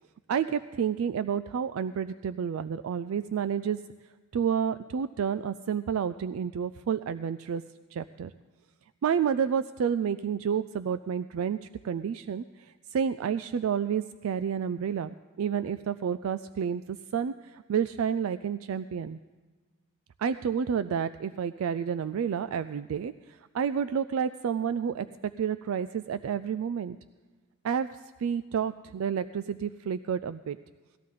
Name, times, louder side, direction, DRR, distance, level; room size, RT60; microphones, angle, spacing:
voice 1, 0.3-3.8 4.3-7.6 7.9-8.3 9.0-19.2 20.2-23.1 23.5-27.0 27.6-27.9 28.2-30.6, right 7 dB, 80° right, 12 dB, 0.3 m, -30 dB
18.5 x 13.5 x 3.8 m, 1.3 s
head